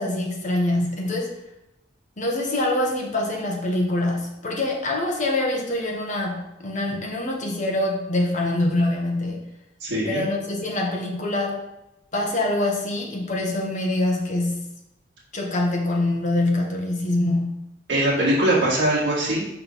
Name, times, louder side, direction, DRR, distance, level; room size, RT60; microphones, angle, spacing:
voice 1, 0.0-1.3 2.2-9.5 10.1-11.6 12.1-14.7 15.3-17.7, left 1 dB, 40° left, -1 dB, 1.4 m, -25 dB
voice 2, 9.8-10.2 17.9-19.5, right 1 dB, 65° right, -9 dB, 2.0 m, -21 dB
5.3 x 4.1 x 5.7 m, 0.90 s
head